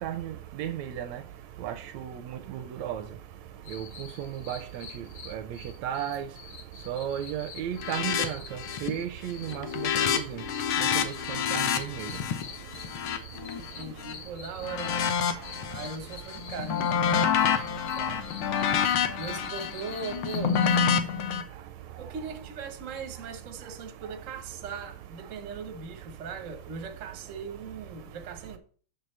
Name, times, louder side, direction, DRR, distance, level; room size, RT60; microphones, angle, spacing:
voice 1, 0.0-0.3 0.6-1.2 1.6-3.0 3.7-5.0 5.3-5.4 5.8-6.3 6.9-8.4 8.8-9.7 10.0-10.4 10.9-12.1, right 10 dB, 80° right, 1.7 m, -34 dB
sound 1, 3.6-20.9, left 7 dB, 65° left, 1.5 m, -46 dB
sound 2, 7.8-8.3 8.6-9.0 9.3-14.1 14.6-16.0 16.3-21.4, left 7 dB, 85° left, 1.1 m, -28 dB
voice 2, 13.6-15.1 15.7-18.2 19.2-20.6 22.0-28.6, right 5 dB, 65° right, 0.7 m, -39 dB
7.9 x 6.5 x 3.3 m
omnidirectional pair, 3.4 m